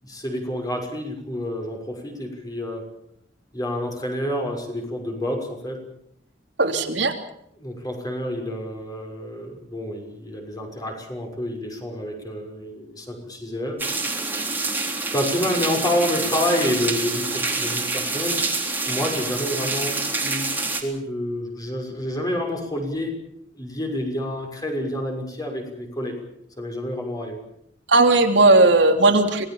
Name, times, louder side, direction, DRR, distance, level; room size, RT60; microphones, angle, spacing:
voice 1, 0.0-2.9 3.5-5.8 7.6-13.8 15.0-18.4 18.9-20.5 20.8-23.2 23.6-26.1 26.6-27.4, left 1 dB, 20° left, 3 dB, 6.2 m, -28 dB
voice 2, 6.6-7.1 27.9-29.5, right 2 dB, 75° right, 5 dB, 3.1 m, -16 dB
sound 1, 13.8-20.8, right 3 dB, 10° right, 3.8 m, -26 dB
26.5 x 19.5 x 7.3 m, 0.73 s
head